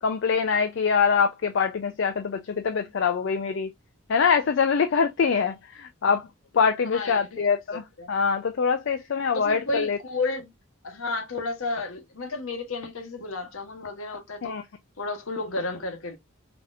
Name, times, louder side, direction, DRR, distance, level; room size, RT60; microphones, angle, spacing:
voice 1, 0.0-3.7 4.1-6.3 6.5-10.0 14.4-14.6, left 6 dB, 60° left, 0.4 m, -24 dB
voice 2, 6.8-7.5 8.0-8.1 9.3-10.5 10.8-14.6 15.0-16.2, left 3 dB, 75° left, 1.0 m, -32 dB
4.0 x 2.9 x 2.4 m
head